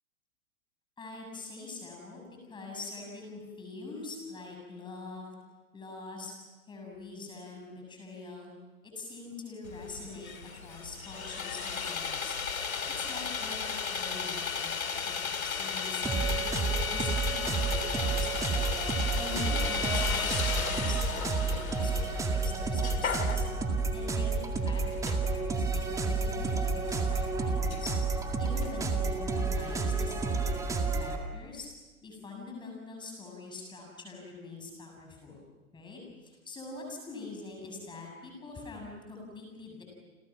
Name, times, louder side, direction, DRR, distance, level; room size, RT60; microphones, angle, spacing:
voice 1, 1.0-5.4 5.7-6.3 6.7-8.5 8.8-12.4 13.0-15.0 15.2-16.6 16.9-23.5 23.9-27.9 28.4-31.7 32.0-35.4 35.7-39.8, left 3 dB, 10° left, 1 dB, 7.2 m, -44 dB
Sawing, 9.6-29.0, left 6 dB, 70° left, 2.5 m, -36 dB
sound 1, 16.0-31.2, right 4 dB, 5° right, 2.0 m, -30 dB
30.0 x 29.5 x 6.1 m, 1.2 s
figure-of-eight pair, 125°, 43 cm